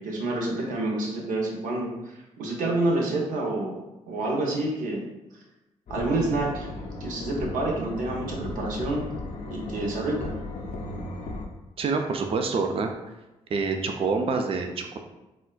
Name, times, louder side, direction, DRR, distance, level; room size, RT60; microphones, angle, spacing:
voice 1, 0.0-5.0 5.9-6.7 7.0-9.0 9.5-10.3, right 2 dB, 80° right, -2 dB, 0.7 m, -28 dB
sound 1, 5.9-11.5, left 2 dB, 65° left, 0.5 m, -36 dB
voice 2, 11.8-12.9 13.5-15.0, right 4 dB, 45° right, 5 dB, 0.4 m, -26 dB
4.0 x 2.2 x 2.2 m, 1.0 s
supercardioid pair, 50°, 14 cm